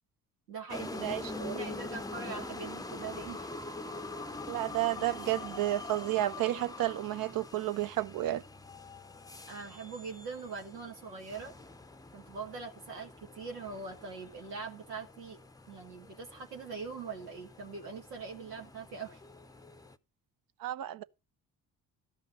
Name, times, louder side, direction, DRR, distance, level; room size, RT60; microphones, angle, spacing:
voice 1, 0.5-3.5 9.5-11.5 12.1-15.4 15.7-19.2, right 5 dB, 85° right, 1.4 m, -42 dB
sound 1, 0.7-20.0, left 2 dB, 10° left, 0.7 m, -45 dB
voice 2, 1.0-1.6 4.5-8.4 20.6-21.0, right 14 dB, 45° right, 0.7 m, -32 dB
12.5 x 5.7 x 6.6 m
figure-of-eight pair, 45°, 47 cm